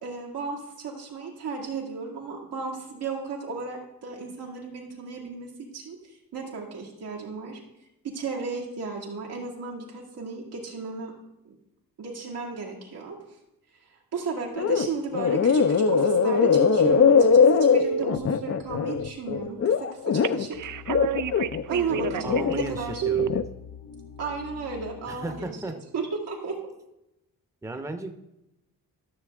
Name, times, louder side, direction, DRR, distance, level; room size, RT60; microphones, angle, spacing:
voice 1, 0.0-6.0 6.3-7.6 8.0-11.1 11.4-11.6 12.0-13.2 14.1-20.6 21.7-23.0 24.2-25.6 25.9-26.6, right 4 dB, 85° right, -2 dB, 2.3 m, -34 dB
sound 1, 14.6-14.9 15.1-20.5 20.9-22.6 23.0-23.4, left 7 dB, 40° left, 0.5 m, -21 dB
sound 2, 15.8-18.0 20.2-22.6 23.0-23.3, right 5 dB, 55° right, 0.5 m, -28 dB
sound 3, 20.5-25.5, left 6 dB, 80° left, 1.7 m, -44 dB
voice 2, 22.2-23.5 25.1-25.8 27.6-28.1, right 2 dB, 10° right, 7 dB, 0.8 m, -35 dB
13.0 x 6.4 x 3.5 m, 0.89 s
cardioid pair, 70°, 39 cm